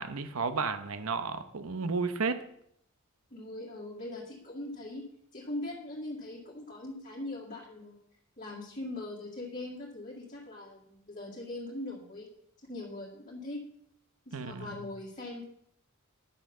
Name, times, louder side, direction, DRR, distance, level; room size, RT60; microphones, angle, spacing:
voice 1, 0.0-2.4 14.3-14.7, right 4 dB, 80° right, 0.9 m, -32 dB
voice 2, 3.3-5.1 5.3-8.0 8.4-12.3 12.6-13.6 14.3-15.4, left 2 dB, 35° left, 2.0 m, -41 dB
10.0 x 6.3 x 6.6 m
head